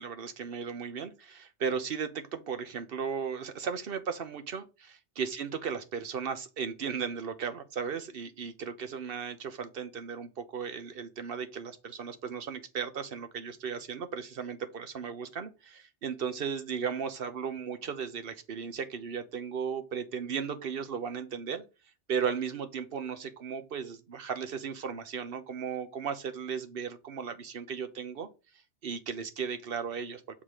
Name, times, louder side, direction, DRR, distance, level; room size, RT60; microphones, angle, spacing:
voice 1, 0.0-4.6 5.2-21.6 22.1-28.3 28.8-30.2, right 6 dB, 60° right, 1.0 m, -36 dB
7.4 x 3.7 x 4.9 m
omnidirectional pair, 1.1 m